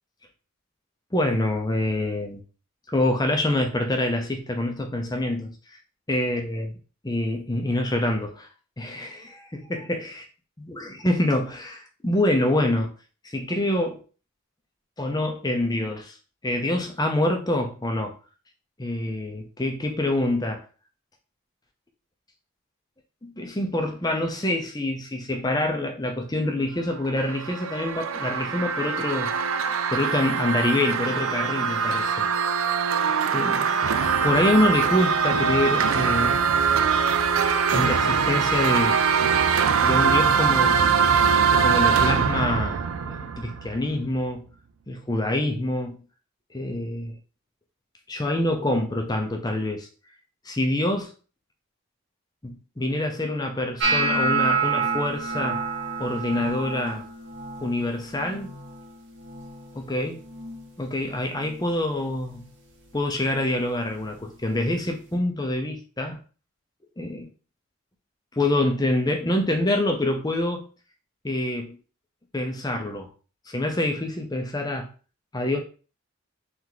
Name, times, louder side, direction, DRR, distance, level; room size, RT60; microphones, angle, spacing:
voice 1, 1.1-2.4 2.9-5.5 6.1-6.7 7.0-8.5 8.8-10.1 10.7-12.9 13.2-14.0 15.0-16.1 16.4-18.1 18.8-20.6 23.2-29.3 29.9-32.3 33.3-33.7 34.2-36.3 37.7-39.0 39.8-40.8 41.6-44.4 44.9-46.0 46.5-47.2 48.1-49.9 50.5-51.1 52.4-55.6 56.0-57.0 57.6-58.5 59.7-60.2 60.8-62.4 62.9-66.2 67.0-67.3 68.3-70.7 71.2-71.8 72.3-73.1 73.5-74.9 75.3-75.6, left 1 dB, 20° left, 0.6 m, -26 dB
sound 1, 26.9-43.9, right 6 dB, 75° right, 0.4 m, -22 dB
sound 2, 53.8-59.9 60.2-60.7 61.0-61.6 62.2-62.4 64.2-64.3, right 4 dB, 60° right, 0.9 m, -28 dB
3.4 x 3.0 x 3.9 m
head